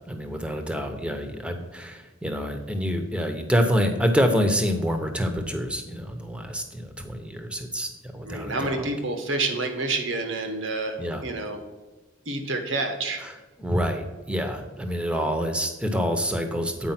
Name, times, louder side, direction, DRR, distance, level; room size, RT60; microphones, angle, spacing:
voice 1, 0.1-8.9 11.0-11.2 13.2-13.3 13.6-16.9, equal, 5° right, 6 dB, 0.8 m, -27 dB
voice 2, 8.2-11.6 12.2-13.2, right 3 dB, 80° right, 5 dB, 1.4 m, -28 dB
8.9 x 5.0 x 5.9 m, 1.2 s
head